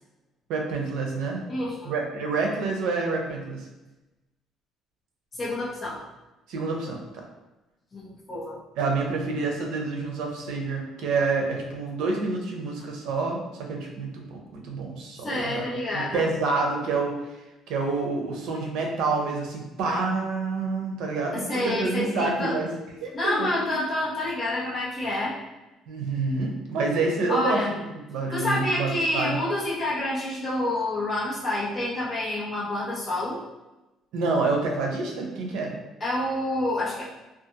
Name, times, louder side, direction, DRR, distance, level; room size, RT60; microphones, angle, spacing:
voice 1, 0.5-1.4 1.8-3.6 6.5-7.3 8.8-15.6 15.9-17.4 17.7-22.7 23.0-23.7 25.9-27.8 28.1-29.4 34.1-35.7, right 3 dB, 80° right, 1 dB, 0.6 m, -28 dB
voice 2, 1.5-1.9 5.3-6.0 7.9-8.6 15.2-16.2 21.3-22.6 23.1-25.4 27.3-27.7 28.3-33.4 36.0-37.0, left 1 dB, 30° left, -7 dB, 0.9 m, -28 dB
2.5 x 2.4 x 2.8 m, 1.0 s
cardioid pair, 175°, 0 cm